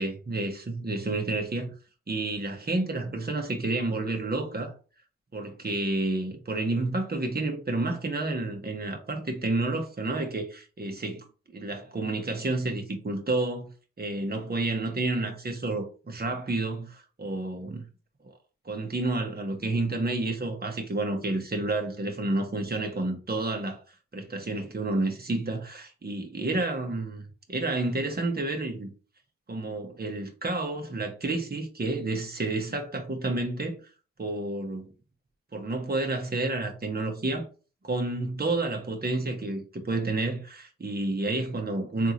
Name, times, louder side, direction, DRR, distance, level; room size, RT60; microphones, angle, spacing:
voice 1, 0.0-1.7 2.1-4.7 5.3-11.2 11.5-13.7 14.0-17.8 18.6-23.8 24.1-28.9 29.5-33.8 34.2-34.9 35.5-37.5 37.8-42.1, right 2 dB, 30° right, 1.1 m, -30 dB
3.6 x 2.6 x 2.8 m
cardioid pair, 45°, 30 cm